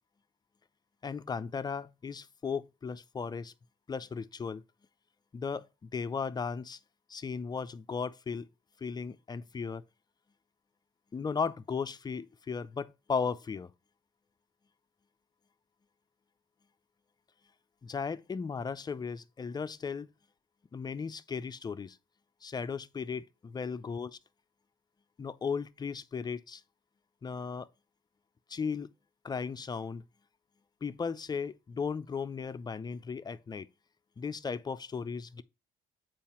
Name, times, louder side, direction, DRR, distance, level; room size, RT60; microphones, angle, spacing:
voice 1, 1.0-3.5 3.9-4.6 5.3-6.8 7.1-8.5 8.8-9.8 11.1-13.7 17.8-20.1 20.7-22.0 22.4-24.1 25.2-26.6 27.2-27.7 28.5-28.9 29.2-30.0 30.8-33.7 34.2-35.4, left 5 dB, 25° left, 0.5 m, -36 dB
7.3 x 4.7 x 4.3 m
cardioid pair, 110°, 17 cm